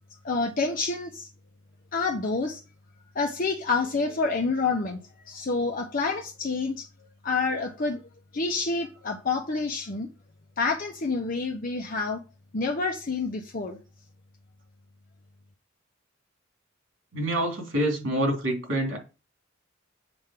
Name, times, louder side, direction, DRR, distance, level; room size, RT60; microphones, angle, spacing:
voice 1, 0.2-1.3 1.9-2.6 3.1-5.0 5.3-6.9 7.2-8.0 8.3-10.1 10.6-12.2 12.5-13.8, left 4 dB, 45° left, 0.8 m, -28 dB
voice 2, 17.1-19.0, right 1 dB, 80° right, 3.3 m, -26 dB
7.8 x 3.7 x 5.8 m
head